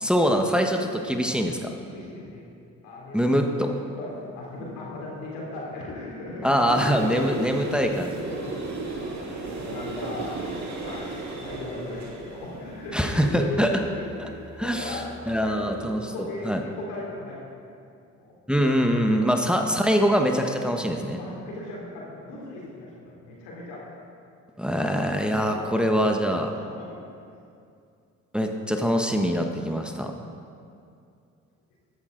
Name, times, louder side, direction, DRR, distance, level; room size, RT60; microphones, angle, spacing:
voice 1, 0.0-1.7 3.1-3.7 6.4-8.3 12.9-13.7 14.2-14.3 14.6-16.6 18.5-21.2 24.6-26.5 28.3-30.1, equal, 5° right, 3 dB, 1.3 m, -24 dB
voice 2, 1.8-2.4 2.8-3.3 3.9-6.5 7.1-7.4 8.2-17.7 18.2-18.4 21.1-23.8 24.7-27.0 29.8-30.0, left 2 dB, 85° left, -4 dB, 3.2 m, -38 dB
sound 1, 6.7-16.0, right 3 dB, 50° right, 2.3 m, -36 dB
13.5 x 11.0 x 3.9 m, 2.4 s
hypercardioid pair, 50°, 36 cm